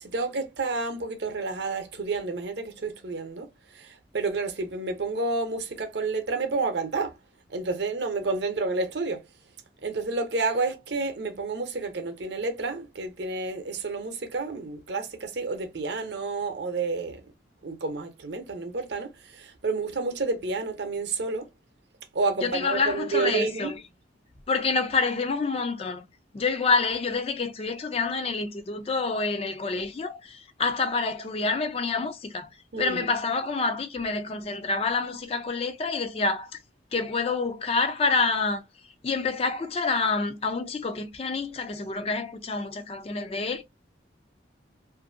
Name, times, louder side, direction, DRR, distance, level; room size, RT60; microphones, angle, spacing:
voice 1, 0.0-3.5 3.8-3.9 4.1-7.1 7.5-9.2 9.8-17.2 17.6-19.1 19.4-21.5 22.1-23.7 32.7-33.1, right 3 dB, 60° right, 0.7 m, -30 dB
voice 2, 22.4-23.8 24.5-26.0 26.3-32.5 32.8-36.5 36.9-38.6 39.0-43.6, left 4 dB, 30° left, 0.3 m, -27 dB
2.6 x 2.5 x 2.5 m
head